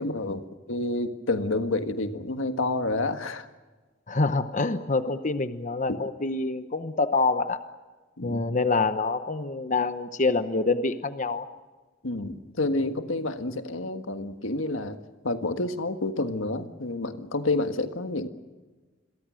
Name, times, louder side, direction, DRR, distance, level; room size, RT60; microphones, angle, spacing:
voice 1, 0.0-3.5 8.2-8.4 12.0-15.0 15.2-18.3, left 2 dB, 85° left, 7 dB, 1.7 m, -29 dB
voice 2, 4.1-7.6 8.2-11.5, left 3 dB, 40° left, 10 dB, 1.0 m, -26 dB
28.0 x 22.5 x 6.4 m, 1.3 s
head